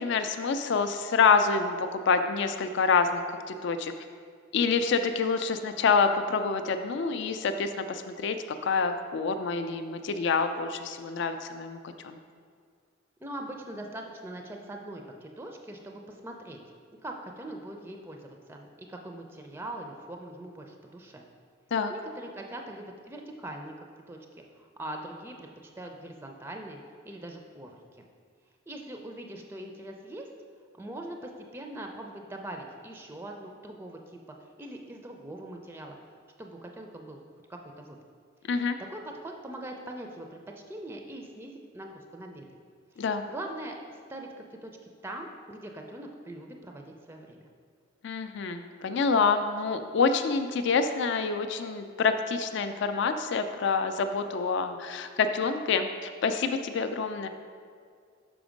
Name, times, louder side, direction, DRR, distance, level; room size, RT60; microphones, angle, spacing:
voice 1, 0.0-3.2 3.5-3.9 4.5-8.4 8.6-11.8 12.0-12.2 21.7-21.9 38.5-38.8 43.0-43.2 48.0-57.3, left 5 dB, 60° left, 8 dB, 0.4 m, -27 dB
voice 2, 13.2-16.6 17.0-21.2 21.9-23.7 24.1-24.2 24.6-25.5 25.8-26.8 27.0-27.8 28.7-30.3 30.7-34.2 34.6-36.0 36.4-37.2 37.5-38.0 38.8-42.5 43.0-43.1 43.3-44.7 45.0-47.5, right 1 dB, 10° right, 2 dB, 0.4 m, -42 dB
6.1 x 5.1 x 5.0 m, 2.1 s
head